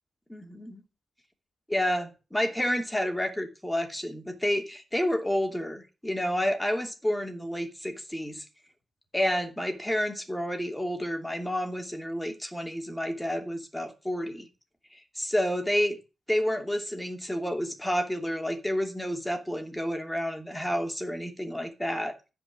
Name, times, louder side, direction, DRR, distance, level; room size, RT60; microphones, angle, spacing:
voice 1, 0.3-0.8 1.7-8.4 9.1-14.5 15.1-16.0 16.3-22.2, equal, 5° left, 2.8 m, -30 dB
14.5 x 5.4 x 9.1 m
wide cardioid pair, 130°, 0 cm